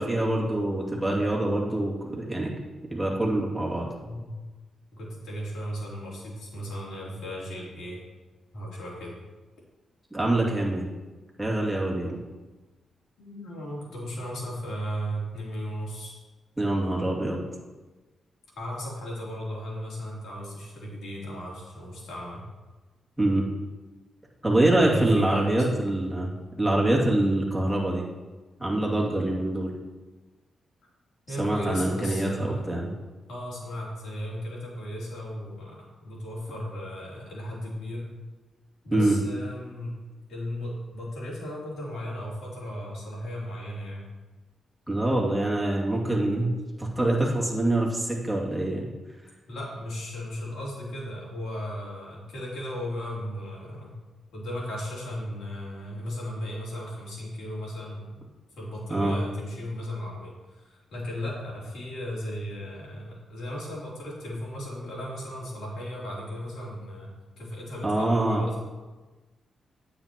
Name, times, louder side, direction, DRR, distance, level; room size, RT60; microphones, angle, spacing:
voice 1, 0.0-2.5 2.9-3.9 10.1-10.9 11.4-12.2 16.6-17.4 23.2-23.4 24.4-26.3 26.6-28.0 28.6-29.7 31.4-32.9 38.9-39.2 44.9-46.5 46.8-48.8 58.9-59.2 67.8-68.5, right 1 dB, 5° right, -4 dB, 2.5 m, -25 dB
voice 2, 4.0-4.3 4.9-8.0 8.5-9.2 13.2-16.2 18.5-22.4 24.8-25.8 31.3-32.8 33.3-38.1 38.8-40.0 40.3-44.1 49.5-53.9 54.3-58.1 58.6-68.6, equal, 85° left, -5 dB, 3.1 m, -36 dB
9.4 x 8.6 x 3.0 m, 1.2 s
cardioid pair, 80°, 0 cm